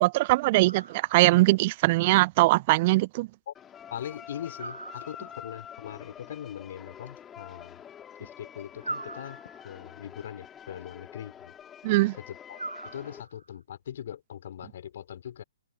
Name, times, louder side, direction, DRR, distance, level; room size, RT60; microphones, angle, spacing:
voice 1, 0.0-3.3 11.8-12.2, right 20 dB, 35° right, 0.4 m, -21 dB
sound 1, 0.7-1.5 4.6-5.6 8.8-9.9 12.6-13.6, right 2 dB, 80° right, 3.7 m, -41 dB
sound 2, 3.5-13.2, left 9 dB, 15° left, 2.9 m, -47 dB
voice 2, 3.9-7.8 8.2-11.5 12.2-15.4, left 10 dB, 50° left, 4.7 m, -41 dB
figure-of-eight pair, 125°, 0 cm